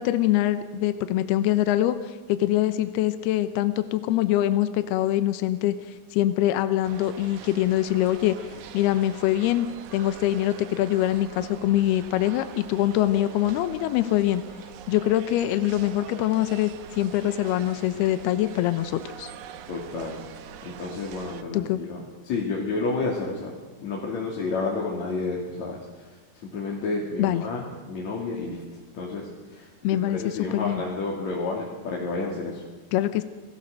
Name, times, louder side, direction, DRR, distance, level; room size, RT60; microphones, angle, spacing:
voice 1, 0.0-5.7 6.1-8.3 8.7-9.7 9.9-14.4 14.9-19.3 21.5-21.8 27.2-27.4 29.8-30.2 30.5-30.8 32.9-33.2, left 13 dB, 80° left, 11 dB, 2.8 m, -24 dB
sound 1, 6.8-21.4, right 8 dB, 65° right, 2.0 m, -44 dB
voice 2, 19.7-23.5 23.8-26.2 26.4-28.6 28.9-32.6, left 3 dB, 50° left, -3 dB, 3.6 m, -31 dB
28.0 x 18.5 x 6.6 m, 1.3 s
omnidirectional pair, 4.7 m